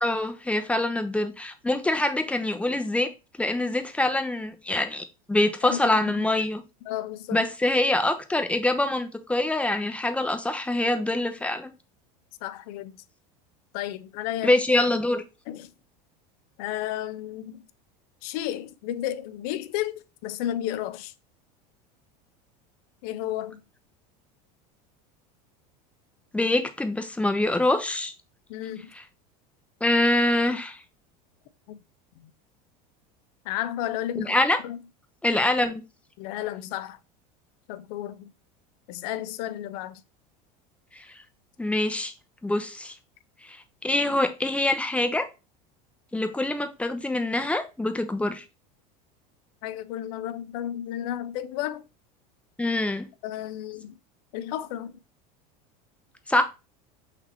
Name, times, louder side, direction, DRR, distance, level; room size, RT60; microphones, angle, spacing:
voice 1, 0.0-3.1 3.4-6.6 7.3-11.7 14.4-15.2 26.3-28.1 29.8-30.8 34.2-34.6 35.2-35.8 40.9-41.0 41.6-42.1 42.4-42.9 43.5-43.6 43.8-45.3 46.1-48.4 52.6-53.1 56.3-56.4, left 2 dB, 5° left, 0.6 m, -25 dB
voice 2, 5.6-6.3 6.9-7.5 12.4-13.0 13.7-14.6 15.5-15.7 16.6-17.6 18.2-21.1 23.0-23.6 28.5-28.9 31.7-31.8 33.4-34.3 34.6-34.8 36.2-37.0 37.7-38.3 38.9-40.0 49.6-51.8 53.2-54.0 54.3-55.0, left 12 dB, 70° left, 0.5 m, -32 dB
4.1 x 2.8 x 4.3 m
hypercardioid pair, 95°, 20 cm